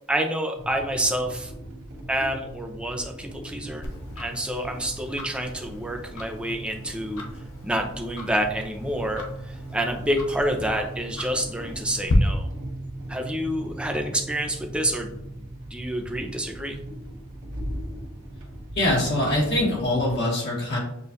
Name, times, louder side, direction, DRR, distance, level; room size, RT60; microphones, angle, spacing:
voice 1, 0.1-1.5 2.1-3.9 4.2-7.2 7.6-12.5 13.1-15.1 15.7-16.8, right 1 dB, 5° right, 3 dB, 0.5 m, -28 dB
sound 1, 0.6-20.2, right 1 dB, 80° right, 1.1 m, -39 dB
Tick-tock, 3.8-12.1, left 2 dB, 85° left, 0.7 m, -38 dB
voice 2, 18.7-20.8, left 1 dB, 55° left, -4 dB, 1.5 m, -23 dB
6.8 x 2.4 x 2.7 m, 0.79 s
head